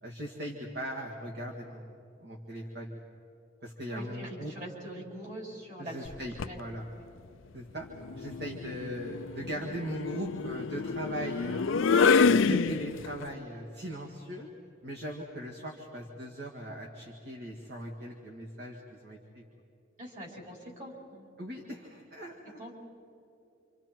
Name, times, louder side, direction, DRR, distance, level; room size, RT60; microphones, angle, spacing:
voice 1, 0.0-3.0 3.6-4.5 5.8-6.8 7.5-7.9 8.1-14.5 14.8-19.4 21.4-22.6, right 1 dB, 55° right, -1 dB, 2.0 m, -39 dB
voice 2, 3.9-6.1 6.4-6.6 20.0-21.2 22.6-22.7, right 1 dB, 40° right, -2 dB, 5.1 m, -43 dB
sound 1, 6.1-6.6 8.0-13.2, left 5 dB, 80° left, 0.6 m, -27 dB
28.0 x 27.5 x 4.5 m, 2.8 s
head